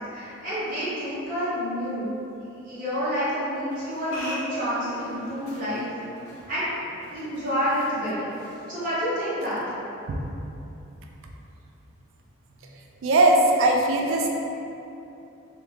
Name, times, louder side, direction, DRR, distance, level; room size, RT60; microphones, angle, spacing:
voice 1, 0.1-2.1 2.6-5.9 6.5-6.7 7.1-8.3 8.7-9.6, equal, 40° right, -12 dB, 1.0 m, -28 dB
sound 1, 3.7-9.4, equal, 75° left, 0.7 m, -43 dB
voice 2, 13.0-14.3, right 2 dB, 65° right, 1 dB, 0.3 m, -19 dB
2.8 x 2.4 x 3.2 m, 2.8 s
head